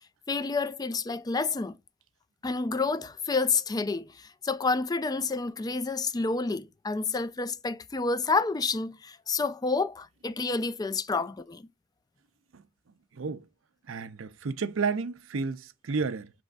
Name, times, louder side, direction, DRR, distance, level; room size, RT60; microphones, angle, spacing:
voice 1, 0.3-1.8 2.4-11.7, left 4 dB, 20° left, 0.4 m, -29 dB
voice 2, 13.1-13.5 13.9-16.3, right 4 dB, 85° right, 0.6 m, -31 dB
6.2 x 3.4 x 2.4 m
head